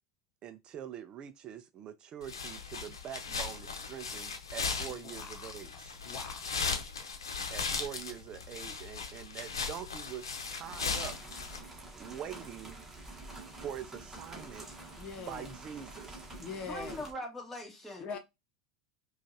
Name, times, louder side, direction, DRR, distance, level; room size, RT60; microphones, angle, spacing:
voice 1, 0.4-6.0 7.5-11.1 12.0-12.8 13.6-14.7 15.2-16.4, right 9 dB, 40° right, 0.4 m, -44 dB
sound 1, 2.2-11.6, left 5 dB, 90° left, 0.8 m, -37 dB
voice 2, 4.9-5.5 6.0-6.7 14.9-15.5 16.4-17.0 18.0-18.2, left 5 dB, 45° left, 0.9 m, -43 dB
sound 2, 10.0-17.1, right 2 dB, 15° right, 1.3 m, -48 dB
voice 3, 16.7-18.1, left 1 dB, 10° left, 1.7 m, -41 dB
5.0 x 2.4 x 2.7 m
hypercardioid pair, 90°, 2 cm